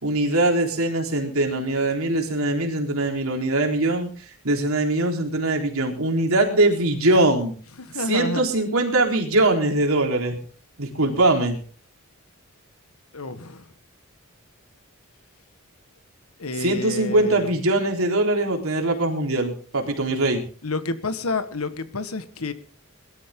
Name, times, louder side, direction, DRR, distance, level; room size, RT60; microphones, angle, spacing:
voice 1, 0.0-4.1 4.4-7.5 7.9-10.4 10.8-11.6 16.6-20.4, right 2 dB, 75° right, 4.0 m, -22 dB
voice 2, 7.8-8.4 13.1-13.6 16.4-17.5 20.6-22.5, left 3 dB, 80° left, 1.5 m, -29 dB
21.5 x 13.0 x 3.8 m
head